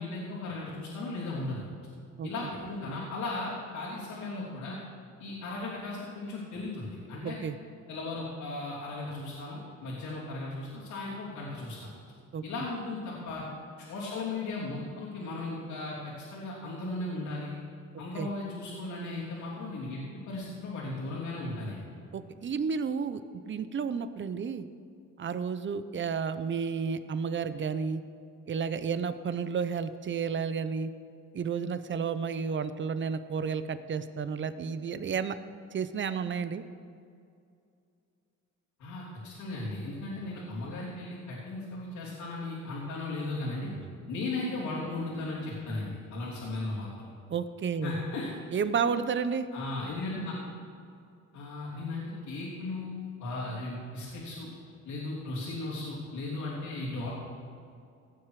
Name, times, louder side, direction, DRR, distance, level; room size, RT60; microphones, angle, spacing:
voice 1, 0.0-1.6 2.2-4.8 5.2-7.4 7.9-11.9 12.4-13.4 13.8-17.5 18.0-20.0 20.3-21.8 38.8-43.7 44.1-47.1 47.8-48.3 49.5-50.3 51.3-52.9 53.2-54.5 54.9-57.1, left 2 dB, 80° left, -9 dB, 3.4 m, -36 dB
voice 2, 7.2-7.6 12.3-12.4 18.2-18.3 22.1-24.7 25.2-28.0 28.5-30.9 31.3-35.4 35.7-36.6 47.3-48.0 48.5-49.5, right 6 dB, 40° right, 12 dB, 0.7 m, -31 dB
18.0 x 7.5 x 4.9 m, 2.4 s
cardioid pair, 90°, 30 cm